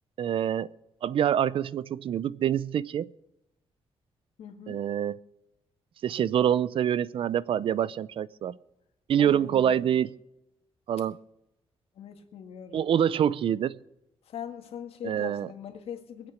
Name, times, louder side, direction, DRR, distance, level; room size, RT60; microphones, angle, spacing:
voice 1, 0.2-0.7 1.0-3.1 4.7-5.2 6.0-8.6 9.1-10.1 10.9-11.2 12.7-13.8 15.0-15.5, right 9 dB, 60° right, 0.5 m, -26 dB
voice 2, 4.4-4.8 9.2-10.0 11.9-12.9 14.3-16.3, left 8 dB, 70° left, 1.8 m, -41 dB
23.0 x 8.3 x 5.1 m
cardioid pair, 140°, 11 cm